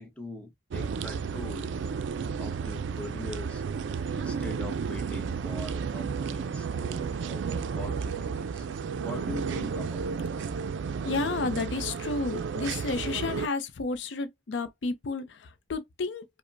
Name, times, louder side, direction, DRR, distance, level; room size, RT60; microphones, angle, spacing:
voice 1, 0.0-1.7 2.4-3.6 4.1-8.7 9.0-10.5, left 1 dB, 5° left, 0.8 m, -42 dB
sound 1, 0.7-13.5, right 6 dB, 75° right, 0.3 m, -32 dB
voice 2, 11.0-16.2, left 3 dB, 75° left, 0.5 m, -31 dB
5.0 x 2.1 x 2.5 m
head